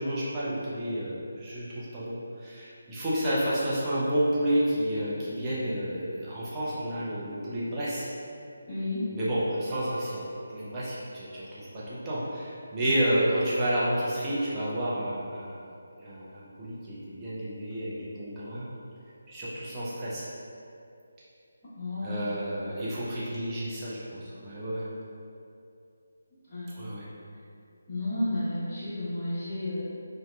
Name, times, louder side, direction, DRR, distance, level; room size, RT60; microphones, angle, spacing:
voice 1, 0.0-8.1 9.1-15.6 16.0-18.7 19.3-20.3 22.0-24.9 26.7-27.1, right 1 dB, 15° right, -10 dB, 0.5 m, -30 dB
voice 2, 8.7-9.1 21.7-22.2 26.5-26.7 27.9-29.9, left 1 dB, 25° left, -15 dB, 1.2 m, -32 dB
2.6 x 2.2 x 2.2 m, 2.6 s
figure-of-eight pair, 150°, 0 cm